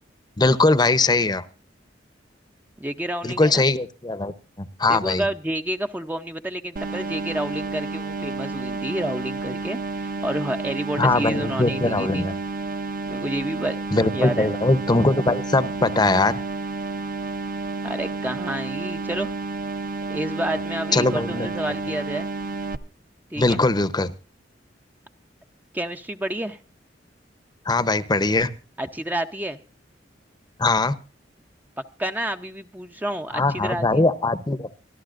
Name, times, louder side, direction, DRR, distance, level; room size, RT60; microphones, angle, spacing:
voice 1, 0.4-1.4 3.2-4.3 4.8-5.2 11.0-12.4 13.9-16.4 20.9-21.5 23.4-24.1 27.7-28.5 30.6-31.0 33.3-34.7, left 2 dB, 25° left, 14 dB, 0.7 m, -21 dB
voice 2, 2.8-3.6 4.9-12.3 13.1-13.8 14.1-14.5 17.8-19.3 20.1-22.3 23.3-23.6 25.7-26.6 28.8-29.6 32.0-34.1, right 1 dB, 10° right, 7 dB, 0.6 m, -29 dB
sound 1, 6.8-22.8, right 3 dB, 50° right, 0.8 m, -31 dB
25.0 x 12.5 x 2.5 m, 0.34 s
head